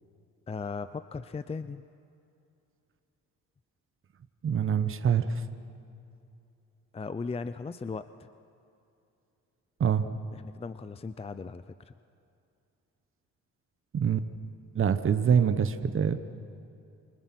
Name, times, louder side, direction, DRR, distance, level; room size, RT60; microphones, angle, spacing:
voice 1, 0.5-1.8 6.9-8.3 10.3-11.9, left 4 dB, 20° left, 12 dB, 0.6 m, -37 dB
voice 2, 4.4-5.3 9.8-10.1 13.9-14.3 14.7-16.2, right 7 dB, 45° right, 10 dB, 1.2 m, -25 dB
28.5 x 24.0 x 6.1 m, 2.6 s
cardioid pair, 90°, 30 cm